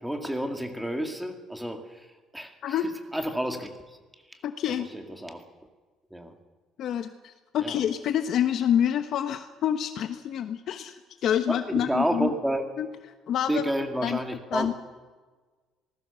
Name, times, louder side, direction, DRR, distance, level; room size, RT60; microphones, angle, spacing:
voice 1, 0.0-4.0 4.3-4.4 4.8-5.4 6.1-6.3 7.6-7.8 11.5-12.7 13.5-14.7, right 1 dB, 5° right, 5 dB, 2.1 m, -30 dB
voice 2, 4.4-4.9 6.8-12.3 12.8-12.9 13.3-13.6 14.0-14.2 14.5-14.7, left 10 dB, 50° left, 8 dB, 1.1 m, -27 dB
26.5 x 19.0 x 6.9 m, 1.3 s
cardioid pair, 170°, 0 cm